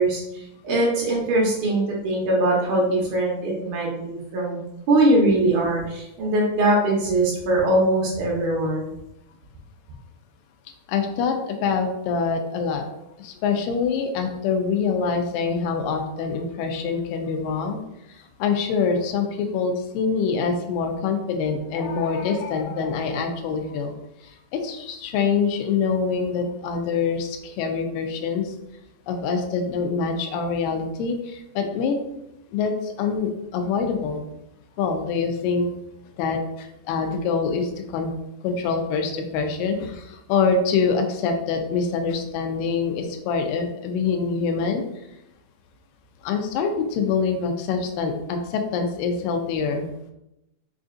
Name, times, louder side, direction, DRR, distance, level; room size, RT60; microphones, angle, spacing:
voice 1, 0.0-8.9, right 1 dB, 75° right, -2 dB, 2.0 m, -22 dB
voice 2, 10.9-12.8 13.2-17.8 18.4-23.9 24.5-28.5 29.1-32.0 32.5-34.2 34.8-35.7 36.2-38.1 38.4-44.9 46.2-49.9, left 5 dB, 90° left, 4 dB, 2.2 m, -25 dB
5.5 x 2.5 x 2.4 m, 0.86 s
omnidirectional pair, 3.8 m